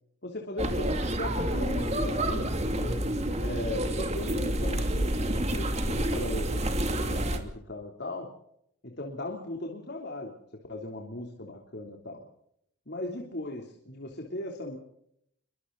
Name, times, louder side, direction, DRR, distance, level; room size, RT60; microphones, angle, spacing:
voice 1, 0.2-3.0 3.4-8.3 8.8-12.2 12.9-14.8, left 1 dB, 50° left, 2 dB, 3.3 m, -38 dB
sound 1, 0.6-7.4, right 1 dB, 30° right, 2.7 m, -29 dB
28.5 x 24.0 x 4.1 m, 0.73 s
head